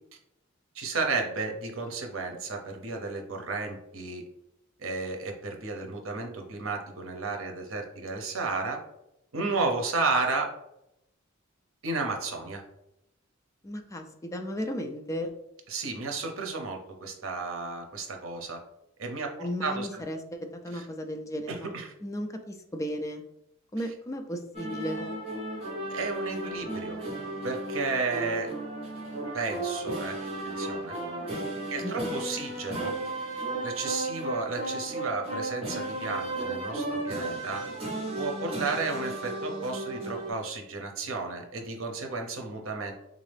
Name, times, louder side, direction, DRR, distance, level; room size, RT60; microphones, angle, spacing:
voice 1, 0.7-4.2 4.8-8.8 9.3-10.5 11.8-12.6 15.7-18.6 19.0-20.0 20.7-20.9 21.5-21.9 25.9-27.0 27.4-28.5 29.3-30.2 30.4-31.0 31.7-32.9 33.6-37.6 38.2-42.9, right 3 dB, 75° right, 3 dB, 0.7 m, -33 dB
voice 2, 13.6-15.3 19.4-21.7 22.0-23.2 23.7-25.1 31.8-32.2, equal, 15° left, 5 dB, 0.4 m, -35 dB
sound 1, 24.5-40.3, right 2 dB, 30° right, 1.2 m, -34 dB
3.6 x 2.7 x 3.3 m, 0.83 s
head